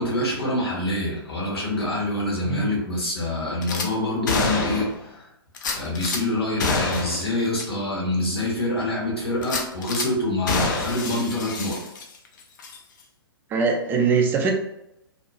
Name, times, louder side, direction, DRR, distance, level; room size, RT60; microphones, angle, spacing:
voice 1, 0.0-5.2 5.7-11.8, left 1 dB, 75° left, -4 dB, 1.1 m, -26 dB
Gunshot gunfire / Glass, 3.6-3.9 4.3-5.0 5.6-6.2 6.6-7.3 7.6-7.7 8.1-8.2 9.4-10.1 10.5-12.3 12.6-12.8, left 3 dB, 50° left, 0.5 m, -27 dB
voice 2, 13.5-14.5, right 5 dB, 15° right, 2 dB, 0.3 m, -22 dB
2.7 x 2.2 x 2.3 m, 0.83 s
figure-of-eight pair, 115°, 13 cm